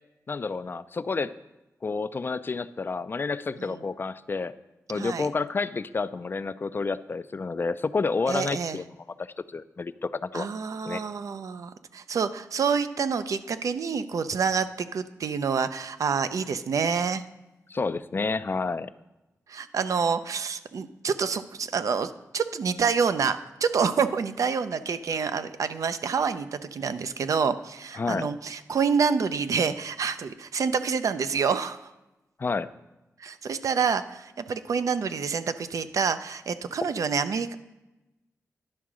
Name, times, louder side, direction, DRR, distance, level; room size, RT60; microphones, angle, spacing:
voice 1, 0.3-1.3 1.8-4.5 4.9-8.8 9.2-10.5 10.8-11.0 17.7-18.9 27.9-28.3 32.4-32.7, left 4 dB, 40° left, 14 dB, 0.3 m, -29 dB
voice 2, 4.9-5.3 8.3-8.8 10.3-17.2 19.5-31.9 33.2-37.5, right 6 dB, 70° right, 11 dB, 0.5 m, -27 dB
10.5 x 3.7 x 6.1 m, 0.99 s
cardioid pair, 80°, 6 cm